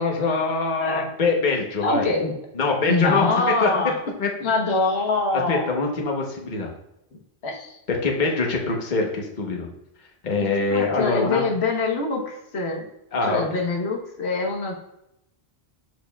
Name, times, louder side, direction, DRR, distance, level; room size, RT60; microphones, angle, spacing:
voice 1, 0.0-2.0 2.5-3.7 4.2-4.3 5.3-6.7 7.9-9.7 10.2-11.4 13.1-13.4, left 3 dB, 50° left, 1 dB, 1.2 m, -24 dB
voice 2, 1.8-2.3 2.9-4.0 4.4-5.6 7.4-7.8 10.4-12.8 13.2-14.7, left 3 dB, 85° left, 1 dB, 1.4 m, -24 dB
6.7 x 6.3 x 2.3 m, 0.84 s
omnidirectional pair, 1.1 m